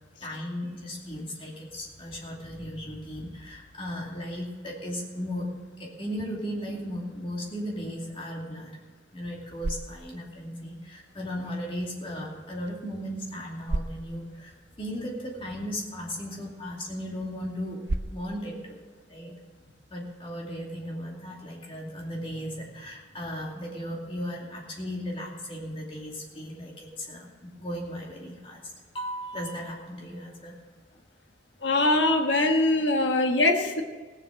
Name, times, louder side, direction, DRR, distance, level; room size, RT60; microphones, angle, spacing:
voice 1, 0.2-5.5 5.8-8.8 9.1-17.8 18.1-18.8 19.1-19.3 19.6-30.6 30.9-31.0, equal, 30° left, -2 dB, 2.5 m, -36 dB
sound 1, 9.2-20.3, right 2 dB, 60° right, 0.7 m, -40 dB
voice 2, 31.6-33.8, left 2 dB, 70° left, 3 dB, 1.4 m, -22 dB
16.5 x 7.6 x 6.4 m, 1.4 s
head